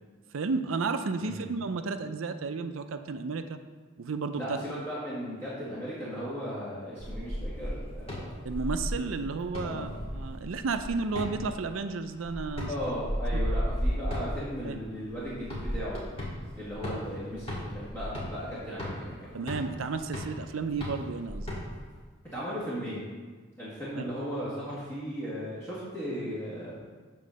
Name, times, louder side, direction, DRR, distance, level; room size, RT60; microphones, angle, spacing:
voice 1, 0.3-3.6 4.0-4.6 8.4-12.7 13.3-13.5 14.6-14.8 19.3-21.5 24.0-24.1, right 4 dB, 80° right, 9 dB, 0.5 m, -32 dB
voice 2, 1.2-1.5 4.3-8.3 9.6-10.0 12.7-16.1 16.5-19.4 22.3-23.1 23.6-26.9, equal, 10° left, -11 dB, 1.8 m, -36 dB
sound 1, 7.0-22.0, equal, 30° left, 2.0 m, -35 dB
8.4 x 3.8 x 6.3 m, 1.4 s
head